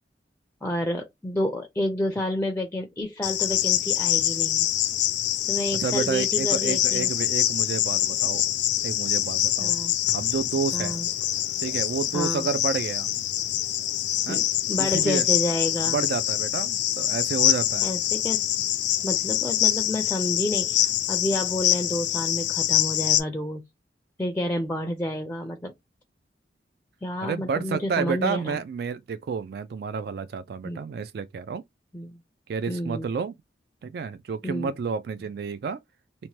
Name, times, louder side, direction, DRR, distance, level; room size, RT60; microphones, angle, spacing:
voice 1, 0.6-4.7 5.5-7.1 9.6-10.0 10.7-11.1 12.1-12.5 14.3-16.0 17.8-18.4 19.0-23.6 24.2-25.7 27.0-28.6 30.6-30.8 31.9-32.2 32.7-33.1 34.4-34.7, left 1 dB, 10° left, 0.4 m, -30 dB
Cricket, 3.2-23.2, left 12 dB, 80° left, 0.4 m, -25 dB
voice 2, 5.8-8.5 8.8-9.7 10.1-11.0 11.6-13.1 14.3-14.4 14.8-15.3 15.9-17.9 27.2-31.6 32.5-33.4 33.8-35.8, right 5 dB, 60° right, 0.3 m, -30 dB
2.8 x 2.1 x 3.0 m
head